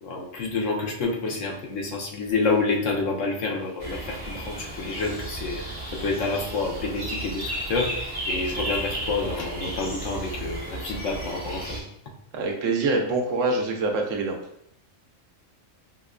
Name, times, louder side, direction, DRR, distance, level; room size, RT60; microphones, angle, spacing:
voice 1, 0.0-11.8, left 3 dB, 75° left, 0 dB, 1.1 m, -28 dB
sound 1, 3.8-11.8, right 1 dB, 30° right, 1.1 m, -34 dB
voice 2, 12.3-14.4, right 3 dB, 85° right, 2 dB, 1.0 m, -25 dB
5.3 x 2.2 x 2.4 m, 0.75 s
omnidirectional pair, 1.3 m